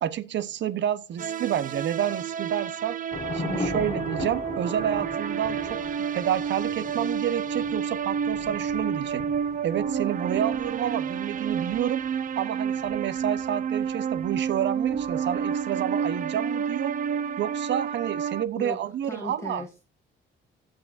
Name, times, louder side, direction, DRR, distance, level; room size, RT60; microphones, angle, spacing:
voice 1, 0.0-3.0 3.3-5.8 6.1-9.2 9.6-12.0 12.4-17.0 17.4-19.6, right 10 dB, 65° right, 0.8 m, -29 dB
sound 1, 1.2-18.4, right 7 dB, 45° right, 0.5 m, -30 dB
Thunder / Rain, 3.1-15.6, left 4 dB, 30° left, 1.3 m, -40 dB
voice 2, 3.5-4.0 18.5-18.8 19.0-19.8, left 2 dB, 15° left, 2.0 m, -36 dB
18.0 x 6.5 x 2.5 m
cardioid pair, 90°, 20 cm